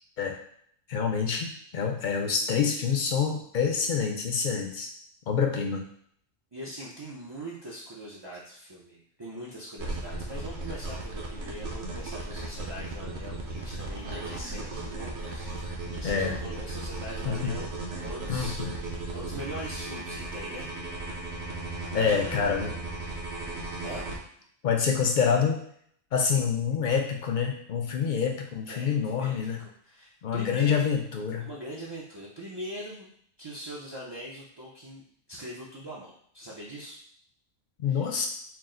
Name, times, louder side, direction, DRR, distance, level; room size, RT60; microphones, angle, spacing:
voice 1, 0.9-1.5 1.7-4.9 5.3-5.8 16.0-16.4 17.2-17.5 18.3-18.7 21.9-22.7 24.6-25.6 26.1-29.6 30.2-31.5 37.8-38.3, left 6 dB, 55° left, 2 dB, 0.5 m, -27 dB
voice 2, 6.5-20.7 21.3-21.4 21.9-22.4 23.0-23.2 23.8-24.1 24.8-24.9 28.7-30.9 31.4-33.1 33.4-35.0 35.3-37.0 37.9-38.0, equal, 40° right, -6 dB, 0.4 m, -42 dB
sound 1, 9.8-24.2, right 2 dB, 65° right, 1.1 m, -36 dB
4.5 x 2.0 x 3.7 m, 0.65 s
omnidirectional pair, 1.3 m